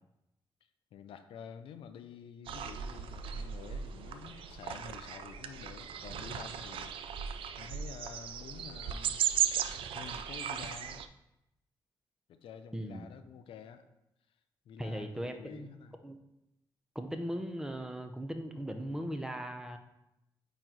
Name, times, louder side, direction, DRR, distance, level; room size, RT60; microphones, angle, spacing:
voice 1, 0.9-9.3 9.9-11.0 12.3-13.9 14.7-16.0, left 7 dB, 90° left, 10 dB, 0.4 m, -49 dB
sound 1, 2.4-11.1, right 8 dB, 85° right, 0.4 m, -36 dB
voice 2, 12.7-13.1 14.8-15.7 16.0-16.2 16.9-19.8, equal, 5° right, 6 dB, 0.7 m, -38 dB
8.7 x 3.0 x 3.9 m, 0.88 s
cardioid pair, 95°, 9 cm